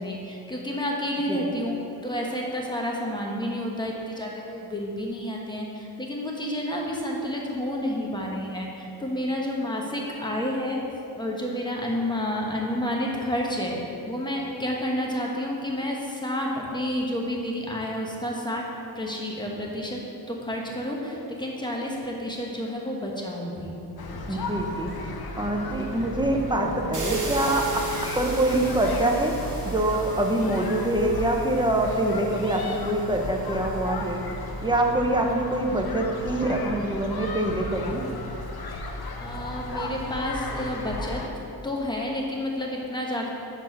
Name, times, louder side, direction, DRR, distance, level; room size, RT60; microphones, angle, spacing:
voice 1, 0.0-1.8 2.0-10.8 11.1-13.8 14.1-18.6 18.9-20.0 20.3-23.8 24.3-24.5 39.2-41.2 41.6-43.3, left 1 dB, 10° left, -2 dB, 1.2 m, -30 dB
sound 1, 24.0-41.3, left 2 dB, 70° left, 0.7 m, -34 dB
voice 2, 24.3-24.9 25.4-27.7 28.1-29.4 29.7-34.2 34.6-38.0, right 1 dB, 10° right, 1 dB, 0.8 m, -25 dB
sound 2, 26.9-33.8, right 2 dB, 50° right, 1.3 m, -37 dB
6.1 x 4.5 x 5.4 m, 2.9 s
wide cardioid pair, 55°, 39 cm